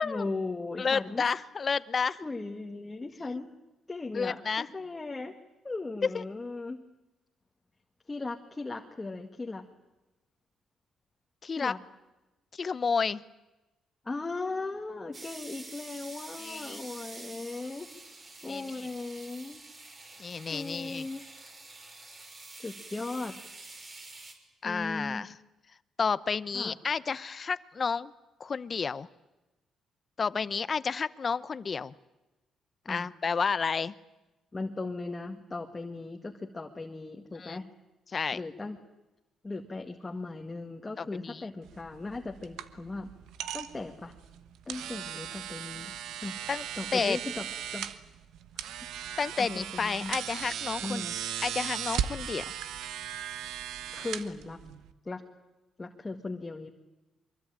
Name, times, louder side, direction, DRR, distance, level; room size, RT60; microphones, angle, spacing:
voice 1, 0.0-1.2 2.2-3.5 3.9-5.4 5.6-6.8 8.1-9.6 11.6-11.8 14.1-17.9 18.4-19.6 20.5-21.2 22.6-23.4 24.6-25.3 26.5-26.8 32.9-33.1 34.5-37.7 38.3-38.8 39.4-43.1 43.5-44.1 44.7-45.9 46.2-46.4 46.8-47.5 47.7-47.9 49.4-50.2 50.8-51.2 53.9-54.6 55.1-55.2 55.8-56.7, left 3 dB, 20° left, 2 dB, 2.0 m, -37 dB
voice 2, 0.8-2.2 4.1-4.7 6.1-6.2 11.4-11.7 12.5-13.2 16.4-16.8 18.5-18.6 20.2-21.1 24.6-25.3 26.0-28.1 28.4-29.1 30.2-31.9 32.9-33.9 37.4-37.6 38.1-38.4 41.0-41.4 46.5-46.6 46.9-47.2 49.2-51.0 51.4-52.5, left 5 dB, 40° left, 17 dB, 0.9 m, -31 dB
sound 1, 15.1-24.3, right 2 dB, 35° right, 5.5 m, -47 dB
sound 2, 41.6-54.9, right 10 dB, 85° right, 1.3 m, -37 dB
24.0 x 23.0 x 9.0 m, 1.1 s
cardioid pair, 90°, 0 cm